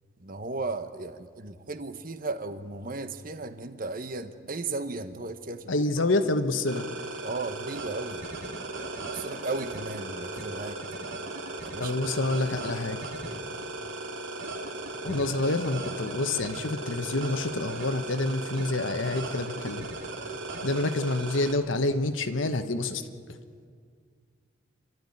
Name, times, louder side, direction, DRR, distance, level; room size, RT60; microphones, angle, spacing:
voice 1, 0.2-5.9 7.2-8.2 9.0-10.8 11.6-12.0 15.0-15.2, right 3 dB, 45° right, 9 dB, 1.1 m, -35 dB
voice 2, 5.7-6.8 11.8-13.0 15.0-19.9 20.6-23.0, left 2 dB, 80° left, 8 dB, 1.3 m, -27 dB
sound 1, 6.7-21.5, right 2 dB, 75° right, 2.4 m, -37 dB
27.0 x 13.0 x 9.9 m, 2.1 s
head